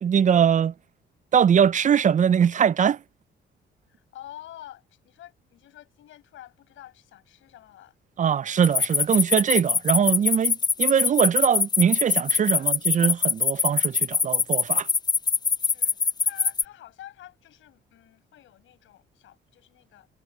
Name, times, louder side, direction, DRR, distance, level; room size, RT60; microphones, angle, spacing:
voice 1, 0.0-0.7 1.3-3.0 8.2-14.9, right 8 dB, 40° right, 0.5 m, -22 dB
voice 2, 3.9-7.9 12.6-12.8 15.6-20.1, left 13 dB, 80° left, 5.9 m, -48 dB
sound 1, 8.6-16.6, left 5 dB, 20° left, 0.4 m, -22 dB
cardioid pair, 90°, 20 cm